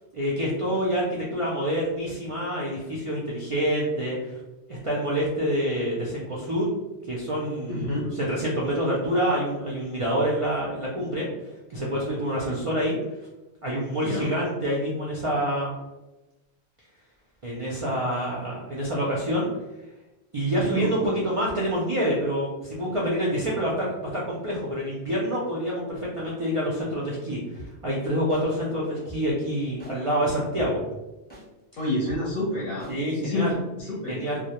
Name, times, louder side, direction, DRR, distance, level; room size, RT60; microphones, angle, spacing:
voice 1, 0.1-1.0 1.3-4.4 4.7-6.7 7.1-7.9 8.1-11.3 11.7-12.9 13.6-15.8 17.4-19.5 20.3-30.8 32.9-33.6 34.1-34.4, equal, 60° right, -5 dB, 0.3 m, -27 dB
voice 2, 7.7-8.1 14.0-14.3 20.6-21.1 31.8-32.9 33.2-34.4, left 1 dB, 60° left, -5 dB, 0.7 m, -29 dB
sound 1, 27.6-27.7 28.3-28.4 29.1-29.2 29.8-29.9 30.6-30.7 31.3-31.4 32.1-32.2 32.8-32.9, equal, 10° left, 0.6 m, -43 dB
2.1 x 2.0 x 2.8 m, 1.0 s
omnidirectional pair, 1.1 m